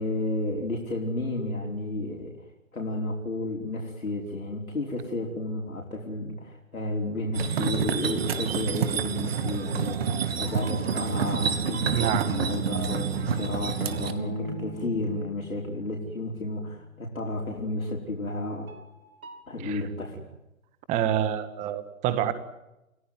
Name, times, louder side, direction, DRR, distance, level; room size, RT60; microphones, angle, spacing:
voice 1, 0.0-2.3 2.7-18.7 19.5-20.2, left 2 dB, 80° left, -1 dB, 5.1 m, -32 dB
sound 1, 7.3-14.1, right 7 dB, 45° right, 2.6 m, -28 dB
sound 2, 10.5-17.2 18.7-19.4, right 2 dB, 80° right, 6.0 m, -37 dB
voice 2, 11.9-12.3 19.6-19.8 20.9-22.3, right 10 dB, 15° right, 13 dB, 1.7 m, -27 dB
29.0 x 17.0 x 9.6 m, 0.94 s
figure-of-eight pair, 135°, 41 cm